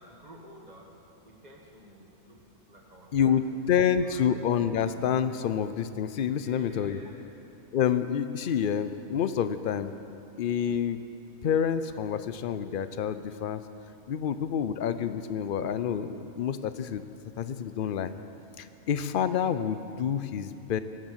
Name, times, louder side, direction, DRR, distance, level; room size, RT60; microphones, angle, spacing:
voice 1, 0.0-2.4 2.7-4.2 6.2-7.3 8.9-9.0, right 1 dB, 30° right, 0 dB, 1.9 m, -52 dB
voice 2, 3.1-7.0 7.7-9.9 10.4-11.0 11.4-13.6 14.1-17.0 17.4-18.1 18.6-20.8, left 8 dB, 65° left, 12 dB, 0.5 m, -28 dB
17.5 x 8.3 x 8.0 m, 2.8 s
omnidirectional pair, 1.5 m